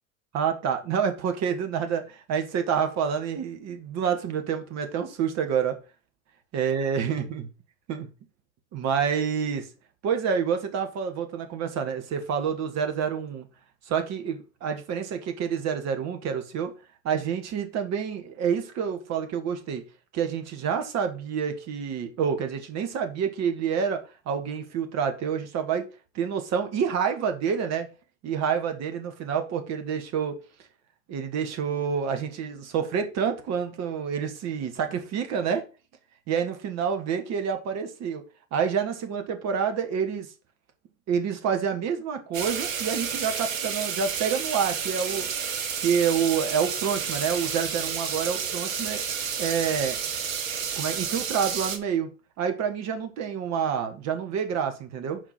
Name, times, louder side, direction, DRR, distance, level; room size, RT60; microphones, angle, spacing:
voice 1, 0.3-5.8 6.5-7.4 7.9-8.1 8.7-9.7 10.0-13.5 13.9-16.7 17.0-19.8 20.1-25.9 26.1-27.9 28.2-30.4 31.1-35.6 36.3-38.2 38.5-40.3 41.1-45.3 45.8-49.0 49.4-50.0 50.7-52.1 52.4-55.2, right 7 dB, 40° right, 1.8 m, -28 dB
sound 1, 42.3-51.8, right 7 dB, 70° right, 1.5 m, -30 dB
6.1 x 5.0 x 6.0 m
figure-of-eight pair, 85°, 41 cm